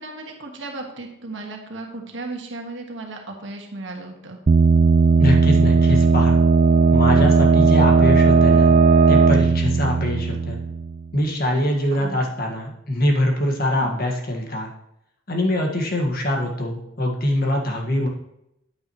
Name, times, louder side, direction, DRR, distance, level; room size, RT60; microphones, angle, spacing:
voice 1, 0.0-4.4 11.8-12.2 13.7-13.9 15.7-16.0, right 2 dB, 65° right, 1 dB, 1.6 m, -35 dB
sound 1, 4.5-11.1, right 4 dB, 40° right, 0.3 m, -16 dB
voice 2, 5.2-6.4 6.9-8.8 9.1-10.6 11.1-14.7 15.3-18.1, left 1 dB, 50° left, 1 dB, 1.7 m, -23 dB
9.5 x 8.8 x 3.1 m, 0.80 s
head